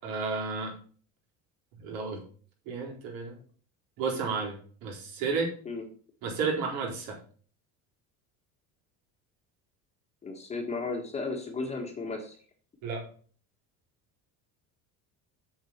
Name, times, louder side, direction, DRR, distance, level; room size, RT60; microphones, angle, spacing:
voice 1, 0.0-0.7 1.8-2.2 2.6-3.4 4.0-5.5 6.2-7.2 12.8-13.1, right 4 dB, 70° right, -1 dB, 4.3 m, -32 dB
voice 2, 10.2-12.3, left 3 dB, 20° left, 2 dB, 1.7 m, -34 dB
7.7 x 7.4 x 5.7 m, 0.43 s
cardioid pair, 175°, 36 cm